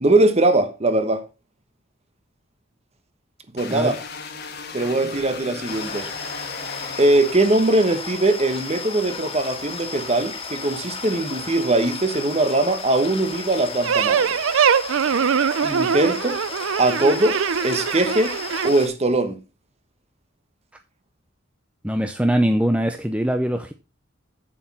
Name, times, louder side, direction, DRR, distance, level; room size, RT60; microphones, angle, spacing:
voice 1, 0.0-1.2 3.5-4.0 4.7-6.1 7.0-14.4 15.6-16.4 16.8-18.4 18.6-19.4, right 2 dB, 30° right, 1.1 m, -21 dB
sound 1, 3.6-8.1, left 4 dB, 55° left, 1.5 m, -36 dB
sound 2, 5.7-18.9, left 4 dB, 30° left, 1.8 m, -34 dB
sound 3, 13.8-18.7, right 7 dB, 75° right, 0.5 m, -22 dB
voice 2, 21.8-23.7, right 1 dB, 5° right, 0.6 m, -22 dB
8.4 x 7.7 x 4.2 m
head